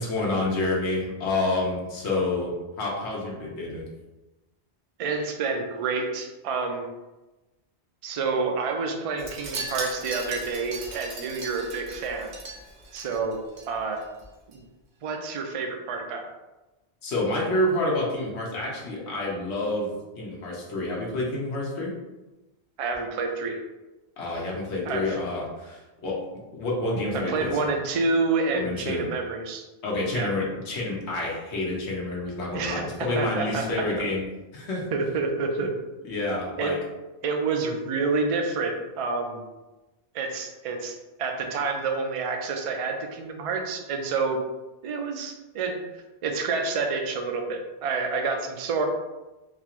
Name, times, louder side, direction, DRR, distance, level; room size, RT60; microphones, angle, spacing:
voice 1, 0.0-3.9 17.0-21.9 24.2-26.2 26.5-27.5 28.5-29.0 29.8-34.2 34.5-34.8 35.6-35.7 36.0-36.8, left 2 dB, 85° left, -3 dB, 1.1 m, -28 dB
voice 2, 5.0-6.8 8.0-12.3 12.9-13.4 13.7-14.0 14.5-14.6 15.0-16.2 22.8-23.6 24.9-25.0 27.3-29.6 30.1-30.3 32.5-32.8 33.1-33.6 34.9-35.7 36.6-36.7 37.2-39.4 40.1-44.4 44.8-45.8 46.2-48.9, right 4 dB, 55° right, 4 dB, 0.4 m, -28 dB
Wind chime, 9.2-13.7 14.0-14.2 14.5-14.6, right 2 dB, 85° right, 1.0 m, -38 dB
3.9 x 2.4 x 2.9 m, 1.1 s
omnidirectional pair, 1.1 m